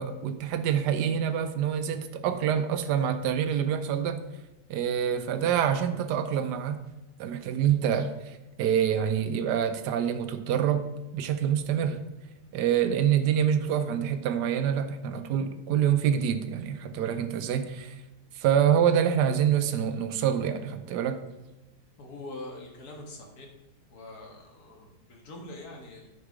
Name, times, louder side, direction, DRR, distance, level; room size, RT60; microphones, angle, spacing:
voice 1, 0.0-4.2 4.7-6.8 7.2-10.9 11.1-12.0 12.5-17.9 18.3-21.2, right 9 dB, 85° right, 10 dB, 1.3 m, -26 dB
voice 2, 22.0-23.5 23.9-26.1, left 2 dB, 65° left, 1 dB, 2.0 m, -44 dB
9.7 x 4.9 x 4.9 m, 1.0 s
omnidirectional pair, 1.8 m